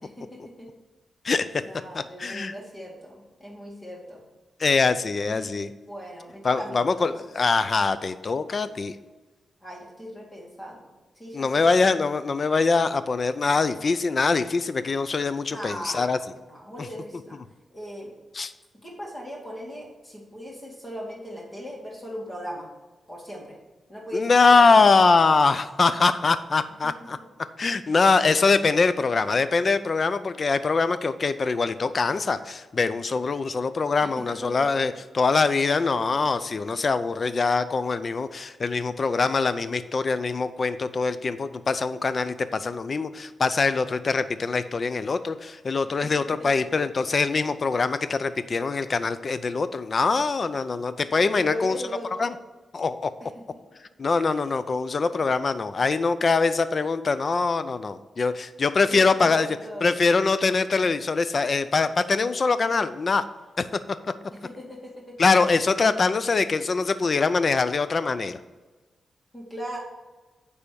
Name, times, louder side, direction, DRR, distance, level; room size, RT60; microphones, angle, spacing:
voice 1, 0.0-0.7 1.6-4.2 5.9-7.1 9.6-11.6 15.5-16.2 16.5-17.4 17.7-18.1 18.8-22.7 23.1-23.6 23.9-25.3 26.8-27.3 34.0-34.7 46.0-46.6 51.1-52.3 53.2-53.4 58.9-59.9 64.3-65.2 69.3-69.8, equal, 20° left, -3 dB, 2.3 m, -38 dB
voice 2, 1.9-2.5 4.6-5.7 6.4-9.0 11.3-16.2 16.8-16.9 18.3-18.5 24.1-27.2 27.6-51.8 52.2-52.3 52.7-53.1 54.0-63.2 63.6-63.7 65.2-68.4, left 4 dB, 45° left, 13 dB, 0.4 m, -23 dB
9.7 x 3.4 x 6.8 m, 1.2 s
wide cardioid pair, 110°, 0 cm